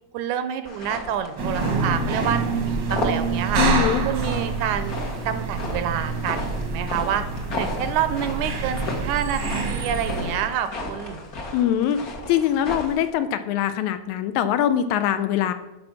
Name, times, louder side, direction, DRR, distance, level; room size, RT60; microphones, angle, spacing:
voice 1, 0.1-3.6 4.1-5.0 5.3-7.2 7.6-11.2, right 9 dB, 80° right, 10 dB, 2.0 m, -28 dB
sound 1, 0.6-13.1, left 1 dB, 50° left, 1.1 m, -34 dB
sound 2, 1.4-10.5, right 4 dB, 55° right, 1.2 m, -27 dB
voice 2, 3.6-4.0 11.5-15.5, left 10 dB, 80° left, 11 dB, 1.9 m, -23 dB
9.6 x 6.1 x 6.0 m, 0.98 s
omnidirectional pair, 3.6 m